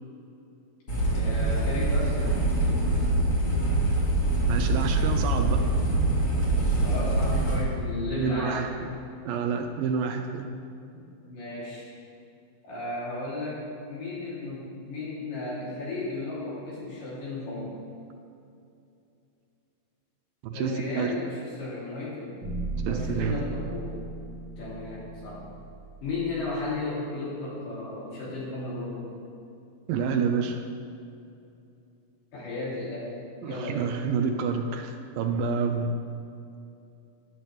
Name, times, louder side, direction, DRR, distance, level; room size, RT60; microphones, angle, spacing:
sound 1, 0.9-7.6, right 2 dB, 25° left, 1.9 m, -24 dB
voice 1, 1.1-2.4 6.8-8.7 11.2-11.9 12.6-17.7 20.5-22.4 22.8-24.0 24.6-25.4 26.0-29.1 32.3-33.1 33.4-33.9, left 2 dB, 65° left, -7 dB, 4.6 m, -34 dB
voice 2, 4.5-5.6 8.2-8.9 9.3-10.5 20.4-21.1 22.8-23.4 29.9-30.6 33.4-36.0, right 5 dB, 80° right, 6 dB, 2.3 m, -28 dB
sound 2, 22.4-26.6, right 2 dB, 35° right, 2.1 m, -36 dB
12.5 x 11.0 x 3.4 m, 2.6 s
omnidirectional pair, 4.2 m